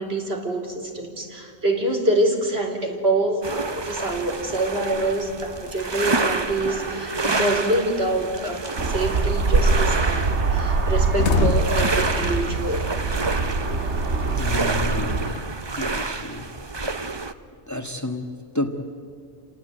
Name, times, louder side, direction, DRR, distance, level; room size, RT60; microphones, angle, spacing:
voice 1, 0.0-12.8, right 1 dB, 65° right, 1 dB, 3.7 m, -25 dB
sound 1, 3.4-17.3, right 3 dB, 25° right, 0.9 m, -29 dB
sound 2, 8.8-15.3, right 3 dB, 90° right, 1.8 m, -23 dB
sound 3, 9.2-9.4 9.8-9.9 10.2-10.4 10.7-13.7 14.0-15.6, left 3 dB, 75° left, 1.5 m, -26 dB
voice 2, 14.3-15.3 15.8-16.5 17.7-18.9, left 1 dB, 15° left, 4 dB, 1.6 m, -30 dB
28.5 x 18.5 x 9.2 m, 2.3 s
omnidirectional pair, 1.2 m